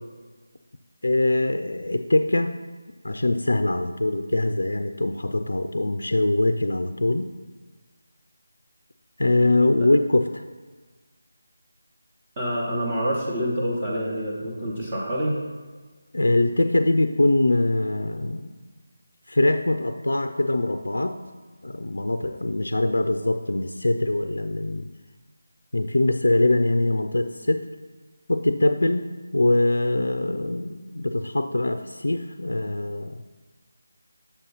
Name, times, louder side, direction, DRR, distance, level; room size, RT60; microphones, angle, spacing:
voice 1, 1.0-2.6 3.0-7.3 9.2-10.4 16.1-18.6 19.3-21.2 21.6-24.9 25.7-27.7 28.3-33.2, left 2 dB, 75° left, 8 dB, 0.3 m, -23 dB
voice 2, 12.4-15.4, equal, 20° right, -7 dB, 1.0 m, -27 dB
6.9 x 2.8 x 5.5 m, 1.4 s
figure-of-eight pair, 160°, 0 cm